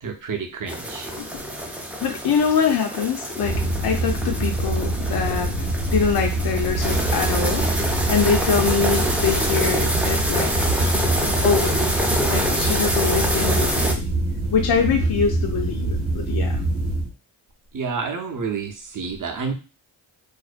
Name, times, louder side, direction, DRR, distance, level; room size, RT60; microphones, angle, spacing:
voice 1, 0.0-1.1 17.7-19.5, right 5 dB, 40° right, 4 dB, 0.7 m, -29 dB
sound 1, 0.7-13.9, equal, 5° right, 0.4 m, -26 dB
voice 2, 2.0-7.6 8.1-10.7 11.4-11.9 12.3-14.0 14.5-16.6, left 6 dB, 55° left, 3 dB, 0.5 m, -24 dB
sound 2, 3.4-17.1, right 2 dB, 85° right, 0.8 m, -25 dB
2.5 x 2.1 x 2.4 m, 0.32 s
cardioid pair, 45°, 48 cm